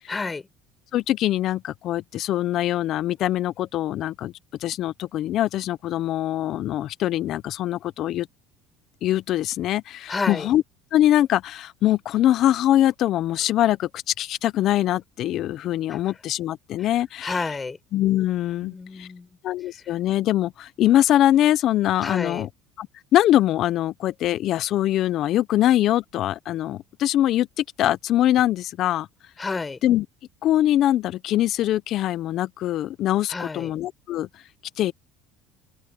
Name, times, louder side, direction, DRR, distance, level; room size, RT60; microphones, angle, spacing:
voice 1, 0.1-0.5 10.1-10.5 15.9-16.1 16.8-16.9 17.2-17.8 18.6-19.3 22.0-22.5 29.4-29.8 33.3-33.7, left 4 dB, 20° left, 5.4 m, -30 dB
voice 2, 0.9-4.3 4.6-8.3 9.0-10.6 10.9-17.4 17.9-19.1 19.4-22.5 22.8-29.1 29.8-30.1 30.4-34.3 34.8-34.9, left 13 dB, 55° left, 0.8 m, -23 dB
open air
supercardioid pair, 110°, 0 cm